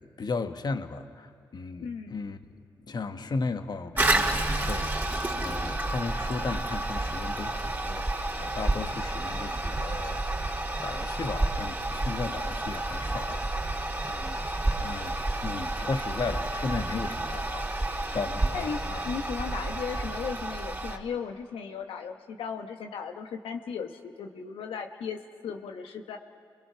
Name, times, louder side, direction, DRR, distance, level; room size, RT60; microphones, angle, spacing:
voice 1, 0.0-2.4 2.9-13.8 14.1-14.4 14.8-17.7 18.1-19.0, left 4 dB, 50° left, 8 dB, 1.3 m, -35 dB
voice 2, 1.8-2.1 18.5-26.2, left 6 dB, 80° left, 4 dB, 1.1 m, -36 dB
Toilet flush, 4.0-21.0, right 2 dB, 20° right, 3.4 m, -30 dB
29.5 x 22.5 x 5.8 m, 2.4 s
supercardioid pair, 55°, 9 cm